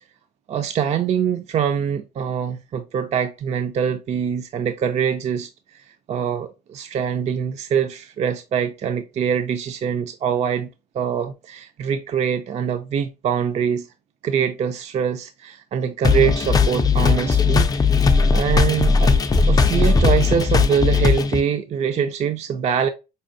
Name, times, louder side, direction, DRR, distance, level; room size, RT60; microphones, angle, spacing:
voice 1, 0.5-5.5 6.1-10.7 10.9-13.9 14.2-17.9 18.3-19.1 19.5-22.9, right 8 dB, 40° right, 0.4 m, -23 dB
sound 1, 16.0-21.4, left 4 dB, 20° left, 0.4 m, -17 dB
5.2 x 2.2 x 2.5 m
cardioid pair, 110°, 17 cm